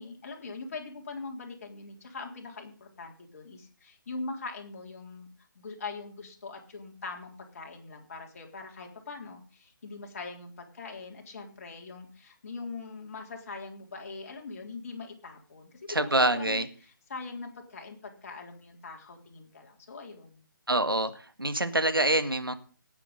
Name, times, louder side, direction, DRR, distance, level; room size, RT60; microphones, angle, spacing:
voice 1, 0.0-5.3 5.6-20.4, left 3 dB, 40° left, 2 dB, 3.6 m, -42 dB
voice 2, 15.9-16.7 20.7-21.1 21.4-22.5, right 1 dB, 85° right, 10 dB, 1.8 m, -25 dB
18.0 x 8.3 x 5.3 m, 0.39 s
figure-of-eight pair, 145°, 12 cm